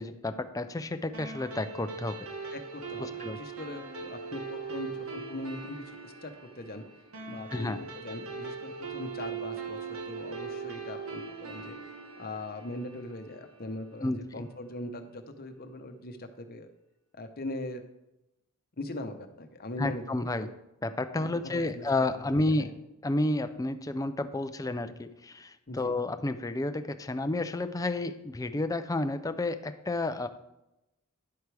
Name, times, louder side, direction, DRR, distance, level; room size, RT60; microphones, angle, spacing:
voice 1, 0.0-2.3 3.0-3.4 7.5-7.8 14.0-14.5 19.8-20.5 20.8-22.7 23.0-30.3, left 2 dB, 15° left, 9 dB, 0.4 m, -31 dB
sound 1, 1.1-13.9, right 5 dB, 65° right, 1.2 m, -40 dB
voice 2, 2.5-6.8 7.3-11.8 12.2-16.7 17.2-17.8 18.8-20.0 20.3-20.5 21.2-21.9 22.1-22.7 25.7-25.9, left 2 dB, 45° left, 7 dB, 0.9 m, -41 dB
10.5 x 7.9 x 3.4 m, 0.91 s
head